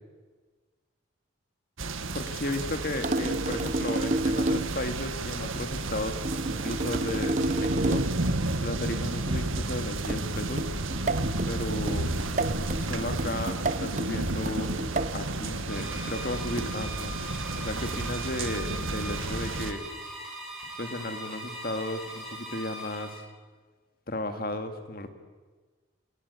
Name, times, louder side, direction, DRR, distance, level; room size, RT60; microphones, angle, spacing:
sound 1, 1.8-19.7, right 2 dB, 85° right, 1.8 m, -32 dB
voice 1, 2.1-6.2 6.4-8.0 8.6-10.7 11.5-12.1 12.7-14.7 15.1-17.2 17.6-19.8 20.8-23.2 24.1-25.1, left 1 dB, 45° left, 7 dB, 2.2 m, -34 dB
sound 2, 3.0-4.8 6.2-8.3 10.1-15.2 16.6-16.9 17.9-18.2, right 2 dB, 35° right, 1.0 m, -31 dB
sound 3, 15.7-23.2, right 1 dB, ahead, 6.6 m, -40 dB
27.0 x 20.5 x 8.5 m, 1.4 s
head